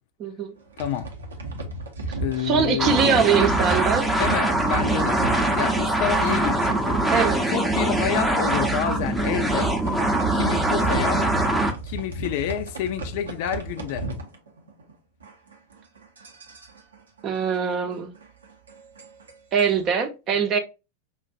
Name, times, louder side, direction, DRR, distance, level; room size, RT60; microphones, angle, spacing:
voice 1, 0.2-0.5 2.4-4.1 7.1-7.4 17.2-18.1 19.5-20.6, right 7 dB, 30° right, 0.8 m, -22 dB
sound 1, 0.6-6.9 7.1-7.4 7.7-7.8 8.4-8.5 9.2-14.9 15.2-19.9, right 1 dB, 70° right, 0.9 m, -36 dB
voice 2, 0.8-1.1 2.2-3.4 4.2-7.0 7.5-9.8 10.3-11.3 11.8-14.1, left 10 dB, 50° left, 0.4 m, -29 dB
sound 2, 2.8-11.7, right 2 dB, ahead, 0.8 m, -23 dB
5.6 x 2.5 x 2.4 m
figure-of-eight pair, 90°, 0 cm